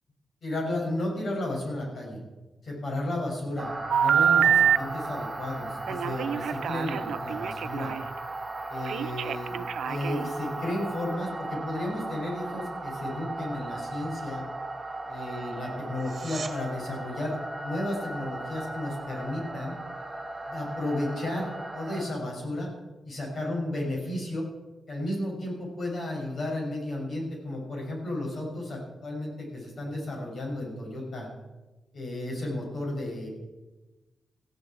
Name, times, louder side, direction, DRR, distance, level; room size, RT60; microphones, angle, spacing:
voice 1, 0.4-2.2 2.6-7.9 8.7-9.6 9.9-14.4 15.1-19.8 20.5-22.7 23.0-24.4 24.9-31.3 31.9-33.3, left 1 dB, 45° left, -1 dB, 7.1 m, -33 dB
sound 1, 3.6-22.0, right 2 dB, 20° right, 4.1 m, -37 dB
Telephone, 3.9-4.8 5.9-8.0 8.9-10.3, right 8 dB, 85° right, 0.5 m, -25 dB
sound 2, 15.9-16.6 27.9-28.0, right 4 dB, 40° right, 2.3 m, -40 dB
18.5 x 15.5 x 4.7 m, 1.1 s
wide cardioid pair, 155°, 0 cm